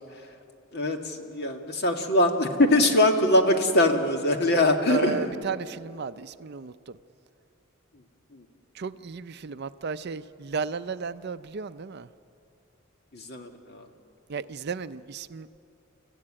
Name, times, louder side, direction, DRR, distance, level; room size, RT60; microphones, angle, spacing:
voice 1, 0.7-5.3 8.3-8.5 13.1-13.9, left 1 dB, 50° left, 4 dB, 2.0 m, -23 dB
voice 2, 4.9-7.0 8.7-12.1 14.3-15.5, right 5 dB, 50° right, 13 dB, 0.5 m, -34 dB
29.5 x 15.0 x 9.9 m, 2.7 s
head